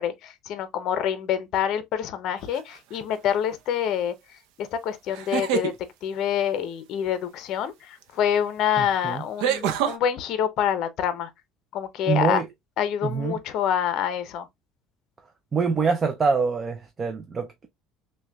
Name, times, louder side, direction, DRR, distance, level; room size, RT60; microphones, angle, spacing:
voice 1, 0.0-4.1 4.6-5.7 6.0-11.3 11.7-12.4 12.8-14.5, left 9 dB, 55° left, 0.6 m, -26 dB
sound 1, 2.5-3.0 5.1-5.7 8.0-8.1 9.4-10.0, right 8 dB, 75° right, 0.5 m, -25 dB
voice 2, 8.8-9.2 12.1-12.5 13.0-13.4 15.5-17.7, right 5 dB, 25° right, 0.4 m, -25 dB
5.9 x 2.2 x 2.2 m
cardioid pair, 140°, 0 cm